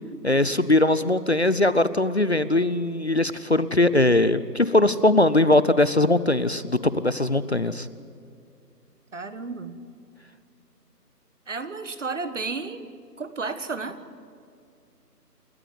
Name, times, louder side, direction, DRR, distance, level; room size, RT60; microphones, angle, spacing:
voice 1, 0.2-7.9, left 2 dB, 45° left, 15 dB, 0.6 m, -20 dB
voice 2, 9.1-9.8 11.5-12.9 13.2-14.0, right 4 dB, 45° right, 11 dB, 1.6 m, -32 dB
28.5 x 13.0 x 9.4 m, 2.4 s
figure-of-eight pair, 170°, 49 cm